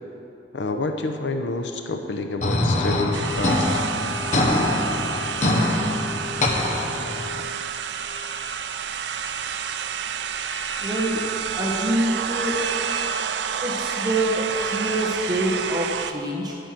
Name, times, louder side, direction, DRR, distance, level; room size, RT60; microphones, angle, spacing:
voice 1, 0.5-3.9, left 2 dB, 80° left, 6 dB, 0.7 m, -28 dB
sound 1, 2.4-7.4, left 1 dB, 40° left, 1.0 m, -24 dB
sound 2, 2.7-7.6, left 5 dB, 10° left, 1.1 m, -37 dB
sound 3, 3.1-16.1, right 7 dB, 75° right, 0.5 m, -29 dB
voice 2, 10.8-11.2 11.6-12.6 13.6-16.6, right 1 dB, 20° right, -3 dB, 1.3 m, -25 dB
10.0 x 9.1 x 6.0 m, 2.8 s
head